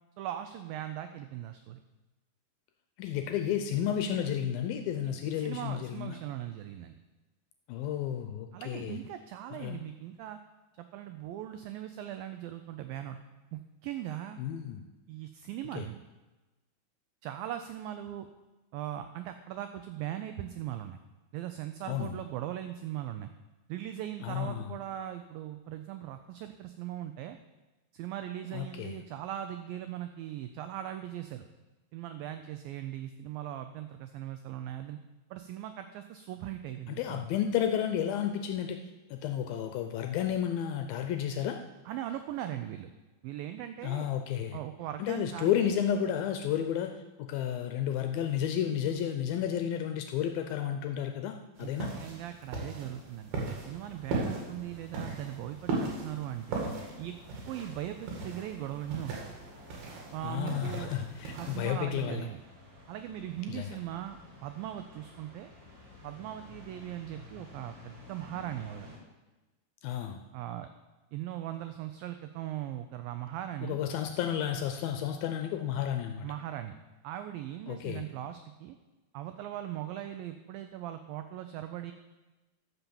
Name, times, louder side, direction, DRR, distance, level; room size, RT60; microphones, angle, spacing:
voice 1, 0.2-1.8 5.0-7.0 8.5-10.4 10.8-13.2 13.5-14.4 15.1-16.0 17.2-18.3 18.7-21.0 21.3-23.3 23.7-27.4 27.9-31.5 31.9-35.0 35.3-37.3 41.9-42.9 43.2-44.1 44.5-45.5 51.6-51.7 52.0-56.6 57.0-57.2 57.5-59.2 60.1-60.9 61.3-62.4 62.9-65.5 66.0-68.9 70.3-70.7 71.1-73.8 76.2-76.7 77.0-78.8 79.1-81.9, right 12 dB, 85° right, 8 dB, 2.0 m, -39 dB
voice 2, 3.0-6.2 7.7-9.0 9.5-9.8 14.4-14.8 15.7-15.9 21.8-22.2 24.2-24.8 28.5-29.0 36.9-38.8 39.1-41.6 43.8-44.6 45.0-51.9 60.2-62.3 63.5-63.8 69.8-70.2 73.6-76.3 77.7-78.1, left 9 dB, 80° left, 6 dB, 2.2 m, -32 dB
sound 1, 51.6-61.7, right 3 dB, 70° right, 4.1 m, -38 dB
sound 2, 53.4-69.0, left 2 dB, 35° right, 2.3 m, -53 dB
14.0 x 5.7 x 7.0 m, 1.1 s
omnidirectional pair, 4.8 m